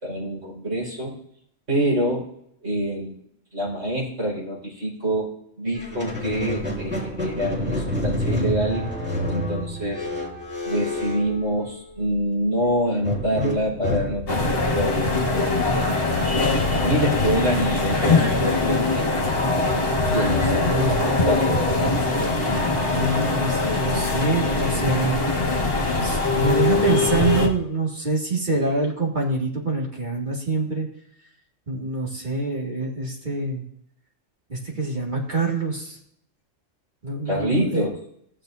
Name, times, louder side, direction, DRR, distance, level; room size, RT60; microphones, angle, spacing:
voice 1, 0.0-1.2 1.7-2.3 2.6-3.1 3.5-5.3 5.6-8.9 9.3-10.1 10.6-15.7 16.0-19.1 20.1-21.9 37.2-37.9, equal, 75° right, -5 dB, 4.9 m, -26 dB
Squeak, 5.7-12.1 13.0-18.2, left 1 dB, 10° right, 2.2 m, -30 dB
sound 1, 14.3-27.5, left 3 dB, 50° left, 1.6 m, -22 dB
voice 2, 20.6-21.0 22.9-25.4 26.0-30.9 31.7-33.6 34.5-36.0 37.0-37.8, right 3 dB, 40° right, -2 dB, 2.3 m, -25 dB
15.5 x 7.5 x 2.6 m, 0.71 s
omnidirectional pair, 1.3 m